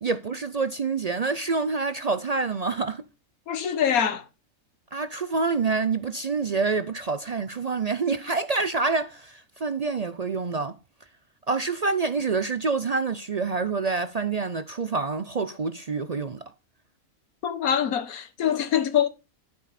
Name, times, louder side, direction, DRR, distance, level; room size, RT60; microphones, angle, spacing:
voice 1, 0.0-3.0 4.9-10.7 11.5-16.4, right 4 dB, 65° right, 0.4 m, -27 dB
voice 2, 3.5-4.2 17.4-19.1, left 9 dB, 85° left, 1.5 m, -24 dB
11.0 x 9.4 x 4.1 m
omnidirectional pair, 1.5 m